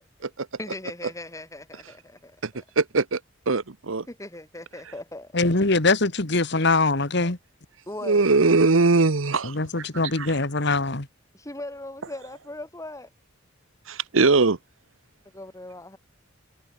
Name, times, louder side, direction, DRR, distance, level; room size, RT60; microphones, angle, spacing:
voice 1, 0.6-2.4 4.1-5.3 7.9-8.3 11.3-13.1 15.3-16.0, left 1 dB, 15° left, 3.6 m, -38 dB
voice 2, 2.8-3.2 3.5-4.1 8.0-9.5 10.2-10.3 13.9-14.6, right 3 dB, 85° right, 1.0 m, -20 dB
voice 3, 5.3-7.4 9.4-11.1, left 3 dB, 60° left, 2.1 m, -23 dB
head